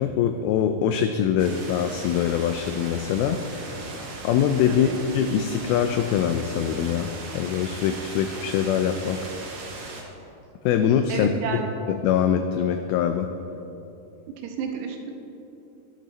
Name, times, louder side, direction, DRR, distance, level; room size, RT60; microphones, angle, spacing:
voice 1, 0.0-3.9 4.2-9.2 10.7-11.6 11.9-13.3, left 8 dB, 85° left, 7 dB, 2.2 m, -23 dB
sound 1, 1.4-10.0, right 3 dB, 60° right, 1.7 m, -38 dB
voice 2, 11.1-11.7 14.4-15.1, right 6 dB, 85° right, 3 dB, 3.2 m, -31 dB
12.0 x 12.0 x 4.1 m, 2.9 s
omnidirectional pair, 4.8 m